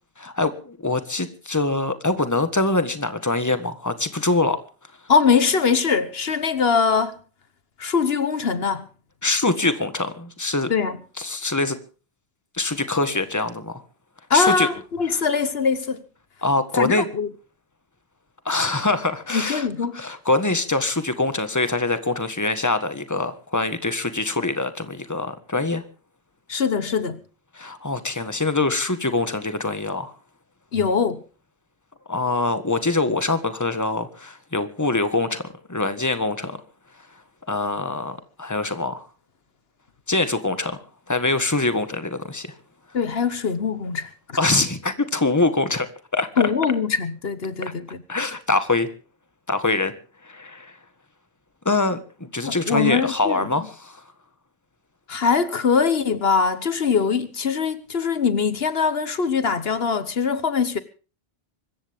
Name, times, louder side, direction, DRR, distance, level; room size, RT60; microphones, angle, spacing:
voice 1, 0.2-4.6 9.2-10.7 11.2-11.8 12.5-13.8 14.3-14.7 15.1-15.2 16.4-17.1 18.4-19.7 19.9-25.8 27.5-30.1 32.1-36.6 37.5-39.1 40.1-40.8 41.1-42.5 44.4-46.3 47.6-47.7 48.1-48.9 49.5-49.9 50.2-50.8 51.6-54.0, left 2 dB, 15° left, 1.6 m, -24 dB
voice 2, 5.1-7.2 7.8-8.9 10.7-11.0 14.3-16.0 16.8-17.3 19.3-20.0 26.5-27.2 30.7-31.2 42.9-44.4 46.4-48.0 52.4-53.4 55.1-60.8, left 5 dB, 70° left, 1.4 m, -22 dB
24.5 x 14.5 x 3.6 m
omnidirectional pair, 1.0 m